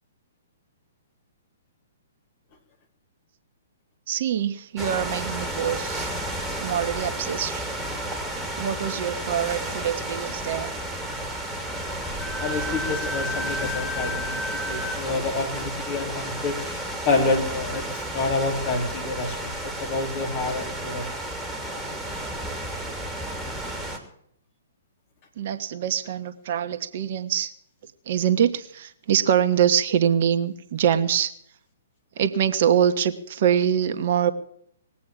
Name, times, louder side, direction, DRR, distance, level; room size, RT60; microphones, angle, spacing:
voice 1, 4.1-6.1 6.6-7.7 8.6-10.8 25.4-27.5 28.0-31.3 32.2-34.3, right 9 dB, 50° right, 9 dB, 1.2 m, -24 dB
sound 1, 4.8-24.0, right 1 dB, 5° right, 2.9 m, -32 dB
Wind instrument woodwind instrument, 12.2-15.0, left 1 dB, 10° left, 4.3 m, -32 dB
voice 2, 12.4-16.8 17.0-21.1, left 3 dB, 40° left, 2 dB, 3.9 m, -28 dB
20.5 x 8.5 x 7.5 m, 0.68 s
figure-of-eight pair, 120°, 0 cm